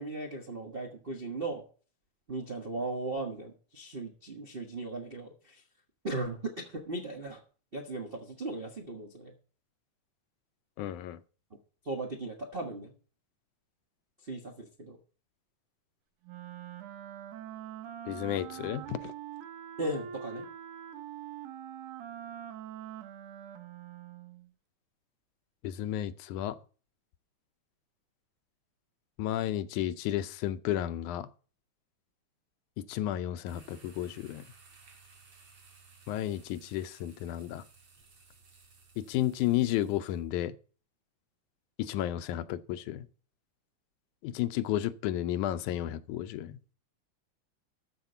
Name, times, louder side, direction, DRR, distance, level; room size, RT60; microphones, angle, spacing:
voice 1, 0.0-1.6 2.3-5.6 6.0-7.4 7.7-9.3 11.8-12.9 14.2-15.0 19.8-20.5, right 2 dB, 70° right, 0.5 m, -37 dB
voice 2, 10.8-11.2 18.1-19.1 25.6-26.6 29.2-31.3 32.8-34.5 36.1-37.7 39.0-40.6 41.8-43.1 44.2-46.6, left 12 dB, 85° left, 2.1 m, -32 dB
Wind instrument woodwind instrument, 16.2-24.5, right 10 dB, 90° right, 2.6 m, -44 dB
sound 1, 33.5-40.3, right 4 dB, 50° right, 4.5 m, -58 dB
13.5 x 4.7 x 6.7 m
omnidirectional pair, 3.4 m